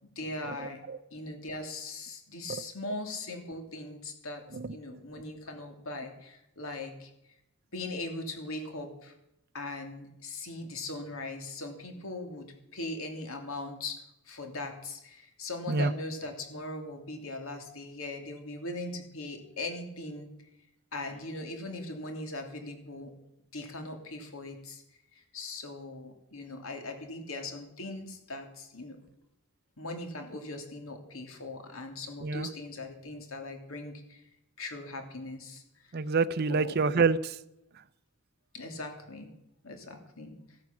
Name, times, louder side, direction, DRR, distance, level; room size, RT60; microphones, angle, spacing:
voice 1, 0.0-0.8 1.1-7.1 7.7-9.1 9.5-20.3 20.9-23.1 23.5-24.8 25.1-29.0 29.8-34.2 34.6-35.6 36.5-36.8 38.5-39.3 39.6-40.4, left 2 dB, 75° left, 4 dB, 2.8 m, -40 dB
voice 2, 0.6-1.0 4.5-4.8 15.7-15.9 32.2-32.5 35.9-37.4, right 4 dB, 50° right, 13 dB, 0.5 m, -27 dB
16.0 x 9.3 x 7.2 m, 0.85 s
head